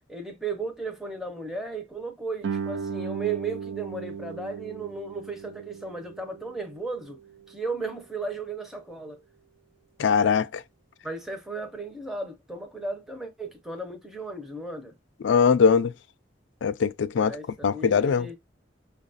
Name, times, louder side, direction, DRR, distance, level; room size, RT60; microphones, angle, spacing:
voice 1, 0.1-7.2 7.5-9.2 11.0-14.9 17.2-18.4, right 3 dB, ahead, 0.6 m, -35 dB
Guitar, 2.4-7.8, right 6 dB, 90° right, 0.4 m, -36 dB
voice 2, 10.0-10.6 15.2-15.9 16.6-17.3 17.6-18.4, left 6 dB, 75° left, 0.4 m, -21 dB
5.6 x 2.3 x 2.6 m
head